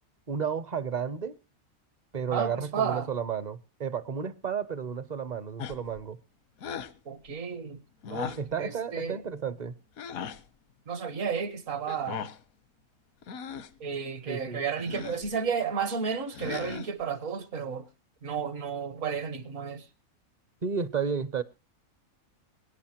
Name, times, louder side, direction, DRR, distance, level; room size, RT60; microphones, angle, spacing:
voice 1, 0.3-1.4 2.1-6.2 8.4-9.8 14.3-14.6 20.6-21.4, right 6 dB, 40° right, 0.7 m, -32 dB
voice 2, 2.3-3.1 7.1-7.8 8.1-9.2 10.9-12.3 13.8-17.8 18.2-19.8, right 6 dB, 70° right, 1.6 m, -32 dB
sound 1, 5.6-6.0 6.6-7.0 8.0-8.5 10.0-10.4 11.9-12.4 13.2-13.8 14.8-15.3 16.3-17.0, left 7 dB, 85° left, 1.3 m, -38 dB
23.0 x 10.5 x 2.9 m
omnidirectional pair, 1.4 m